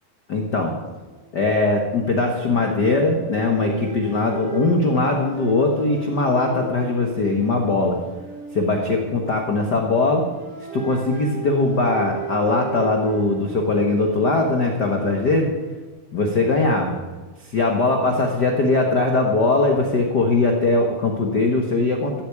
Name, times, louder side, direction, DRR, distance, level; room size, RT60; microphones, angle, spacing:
voice 1, 0.3-0.7 1.3-8.0 8.5-10.2 10.7-15.5 16.1-17.0 17.4-22.2, left 3 dB, 80° left, 2 dB, 0.9 m, -20 dB
sound 1, 1.0-1.2 1.5-1.7 3.2-9.8 10.2-15.9, right 6 dB, 90° right, 8.6 m, -36 dB
14.0 x 8.3 x 8.7 m, 1.3 s
omnidirectional pair, 4.3 m